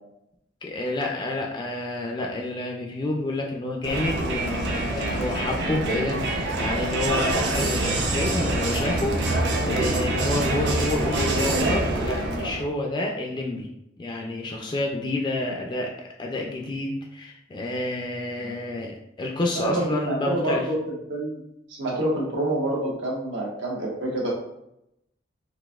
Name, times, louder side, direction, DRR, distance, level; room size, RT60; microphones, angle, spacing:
voice 1, 0.6-13.7 14.0-20.6, left 2 dB, 25° left, 0 dB, 0.3 m, -29 dB
Crowd, 3.8-12.7, right 2 dB, 65° right, 0.5 m, -25 dB
voice 2, 19.5-21.4 21.7-24.3, right 1 dB, 80° right, -3 dB, 1.0 m, -27 dB
4.0 x 2.5 x 2.3 m, 0.82 s
head